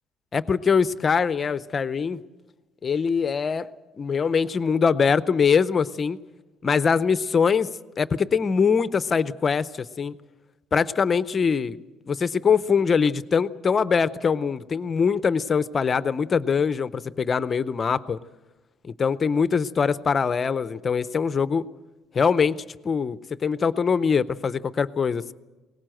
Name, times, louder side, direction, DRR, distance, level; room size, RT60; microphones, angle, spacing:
voice 1, 0.3-2.2 2.8-3.7 4.0-6.2 6.6-7.7 8.0-10.2 10.7-11.8 12.1-18.2 18.8-21.6 22.1-22.6 22.8-25.3, left 6 dB, 25° left, 15 dB, 0.6 m, -23 dB
21.0 x 18.5 x 7.7 m, 1.2 s
cardioid pair, 165°, 0 cm